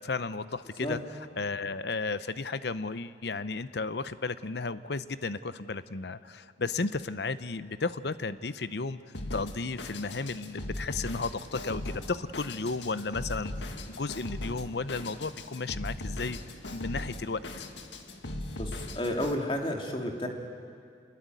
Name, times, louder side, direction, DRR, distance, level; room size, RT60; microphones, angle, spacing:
voice 1, 0.0-9.0 9.3-16.4 16.7-17.7, left 3 dB, 70° left, 14 dB, 0.7 m, -34 dB
Drum kit, 9.1-19.4, left 1 dB, 90° left, 1.9 m, -39 dB
voice 2, 18.6-20.3, left 1 dB, 30° left, 3 dB, 2.5 m, -31 dB
28.0 x 21.0 x 9.1 m, 2.3 s
head